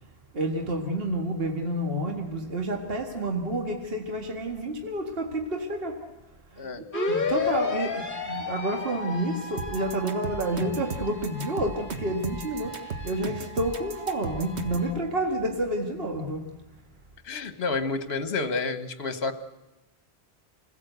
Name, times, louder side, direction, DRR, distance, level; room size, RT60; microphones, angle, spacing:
voice 1, 0.3-6.1 6.5-16.5, right 1 dB, 60° right, 2 dB, 2.0 m, -29 dB
sound 1, 6.9-14.9, left 3 dB, 50° left, 1.7 m, -33 dB
sound 2, 9.6-14.9, right 4 dB, 80° right, 1.6 m, -35 dB
voice 2, 17.2-19.3, left 4 dB, 65° left, 10 dB, 1.4 m, -29 dB
27.5 x 16.5 x 8.0 m, 1.0 s
omnidirectional pair, 1.1 m